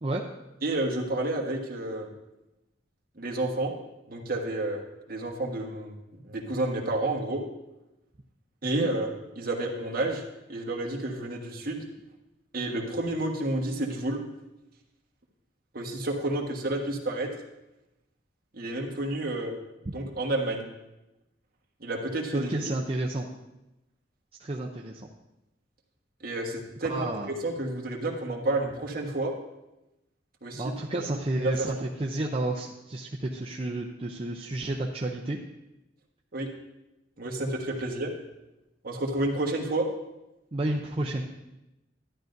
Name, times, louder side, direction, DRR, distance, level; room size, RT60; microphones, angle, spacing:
voice 1, 0.6-2.1 3.2-3.7 4.1-4.8 5.1-5.9 6.2-7.4 8.6-10.2 10.5-11.8 12.5-14.2 15.7-17.3 18.5-19.5 19.9-20.7 21.8-22.5 26.2-29.3 30.4-30.6 31.4-31.8 36.3-36.5 37.2-38.1 38.8-39.8, right 2 dB, 55° right, 1 dB, 1.4 m, -30 dB
voice 2, 22.3-23.3 24.4-25.1 26.9-27.3 30.5-35.4 40.5-41.2, right 1 dB, 30° right, -1 dB, 0.6 m, -31 dB
12.0 x 10.5 x 2.6 m, 0.95 s
head